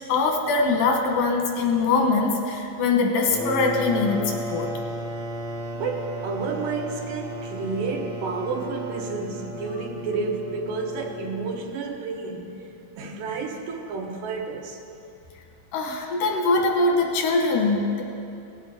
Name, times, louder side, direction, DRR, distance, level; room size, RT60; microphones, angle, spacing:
voice 1, 0.1-4.7 15.7-18.0, left 3 dB, 90° left, 1 dB, 2.9 m, -22 dB
sound 1, 3.2-11.7, equal, 55° right, 1.3 m, -34 dB
voice 2, 5.7-12.7 13.0-14.8, right 4 dB, 85° right, 1 dB, 2.6 m, -31 dB
18.5 x 7.9 x 3.6 m, 2.7 s
omnidirectional pair, 3.8 m